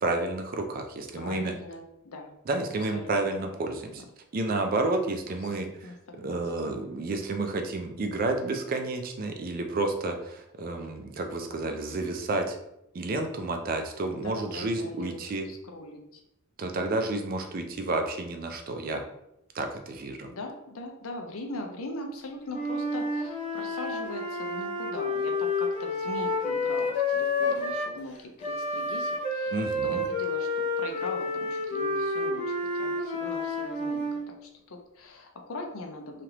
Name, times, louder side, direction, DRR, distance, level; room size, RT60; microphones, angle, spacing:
voice 1, 0.0-1.6 2.5-4.0 4.3-5.7 6.2-12.6 12.9-15.5 16.6-19.0 19.5-20.3 29.5-30.0, right 2 dB, 45° right, 5 dB, 0.4 m, -30 dB
voice 2, 1.1-2.3 2.9-3.3 3.6-4.1 5.5-6.8 14.2-16.2 20.3-36.2, left 2 dB, 80° left, 3 dB, 0.6 m, -41 dB
Wind instrument woodwind instrument, 22.5-27.9 28.4-34.3, left 2 dB, 35° left, 0.8 m, -29 dB
3.2 x 2.4 x 2.9 m, 0.82 s
head